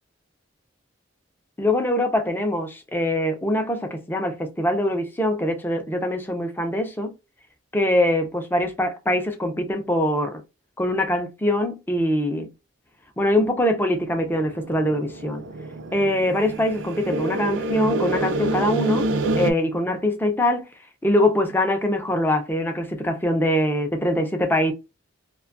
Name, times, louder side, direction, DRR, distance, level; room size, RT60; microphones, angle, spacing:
voice 1, 1.6-7.1 7.7-10.4 10.8-12.5 13.2-15.4 15.9-19.1 19.4-20.7 21.0-24.7, left 1 dB, 10° left, 0.4 m, -23 dB
sound 1, 14.0-19.5, right 2 dB, 65° right, 0.4 m, -27 dB
2.5 x 2.2 x 2.5 m
head